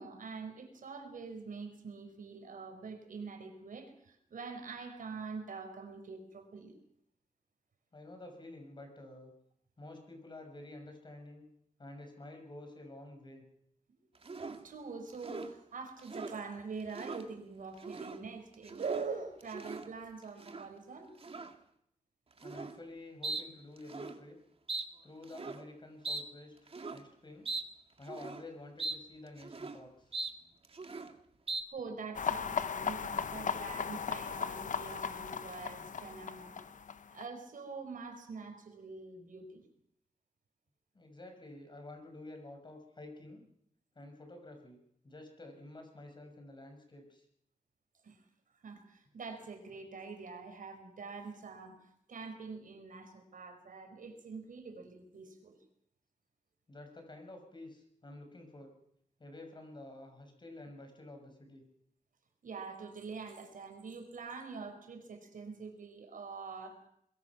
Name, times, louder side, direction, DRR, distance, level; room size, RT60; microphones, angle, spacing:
voice 1, 0.0-6.7 14.0-14.1 14.6-21.1 31.7-36.6 37.1-39.6 48.0-48.2 48.6-51.8 52.1-55.6 62.4-66.8, right 4 dB, 85° right, 6 dB, 4.5 m, -44 dB
voice 2, 7.9-9.3 9.8-11.4 11.8-13.4 22.4-24.4 25.0-27.5 28.0-30.1 40.9-43.4 43.9-44.8 45.0-47.3 56.7-58.7 59.2-61.6, left 2 dB, 35° left, 4 dB, 6.0 m, -50 dB
sound 1, 14.2-14.6 15.1-15.5 16.0-16.4 16.8-17.2 17.7-18.2 18.5-19.1 19.4-19.9 20.4-20.7 21.2-21.5 22.4-22.8 23.2-23.4 23.8-24.2 24.7-24.9 25.2-25.6 26.0-26.2 26.7-27.0 27.5-27.6 28.0-28.4 28.8-29.0 29.3-29.8 30.1-30.3 30.6-31.1 31.5-31.6, right 3 dB, 45° right, 2.0 m, -40 dB
sound 2, 32.1-37.2, left 6 dB, 70° left, 1.0 m, -37 dB
23.0 x 22.0 x 6.0 m, 0.72 s
wide cardioid pair, 130°, 13 cm